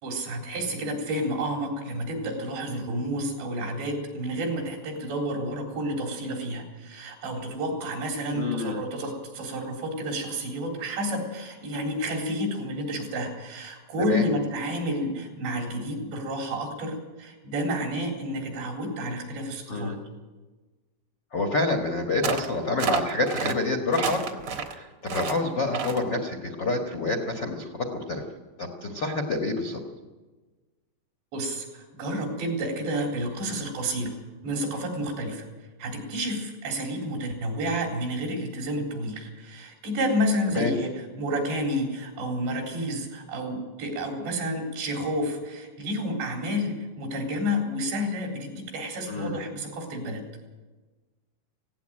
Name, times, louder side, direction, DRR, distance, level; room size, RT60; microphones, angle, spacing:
voice 1, 0.0-19.9 31.3-34.2 34.4-35.5 35.8-50.2, equal, 85° right, 1 dB, 6.1 m, -30 dB
voice 2, 8.3-8.8 14.0-14.2 19.7-20.0 21.3-24.4 24.7-28.2 28.6-29.8 40.5-40.7 49.1-49.4, left 2 dB, 80° left, 4 dB, 0.9 m, -28 dB
sound 1, 22.2-22.5 22.8-23.5 23.9-24.7 25.1-25.4 25.7-26.0, right 6 dB, 60° right, 1.4 m, -29 dB
17.5 x 16.5 x 9.0 m, 1.3 s
omnidirectional pair, 4.9 m